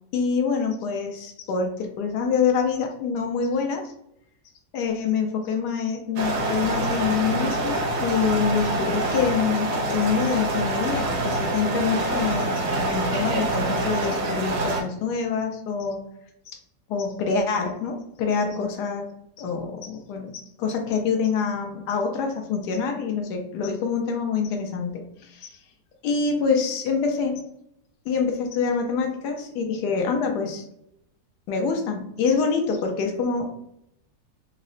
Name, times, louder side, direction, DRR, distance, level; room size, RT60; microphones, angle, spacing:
voice 1, 0.1-3.9 4.7-16.0 16.9-19.1 19.4-25.6 26.0-27.4 28.1-30.6 31.5-33.5, left 5 dB, 85° left, 3 dB, 1.2 m, -26 dB
sound 1, 6.2-14.8, right 2 dB, 65° right, 0.9 m, -26 dB
3.8 x 2.0 x 2.5 m, 0.75 s
omnidirectional pair, 1.7 m